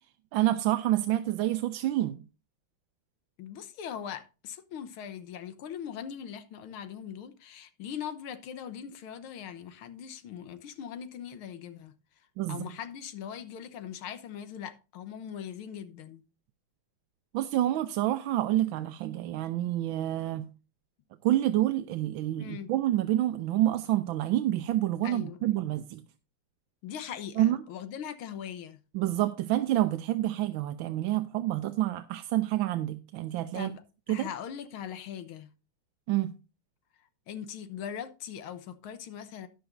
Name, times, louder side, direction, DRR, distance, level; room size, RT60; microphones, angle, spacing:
voice 1, 0.3-2.2 12.4-12.7 17.3-20.5 21.2-26.0 27.4-27.6 28.9-33.7 34.1-34.3 36.1-36.3, right 14 dB, 75° right, 1.3 m, -28 dB
voice 2, 3.4-11.9 12.5-16.2 22.4-22.7 25.0-25.6 26.8-28.8 33.5-35.5 37.3-39.5, left 9 dB, 75° left, 1.8 m, -40 dB
13.0 x 10.0 x 2.6 m
omnidirectional pair, 2.4 m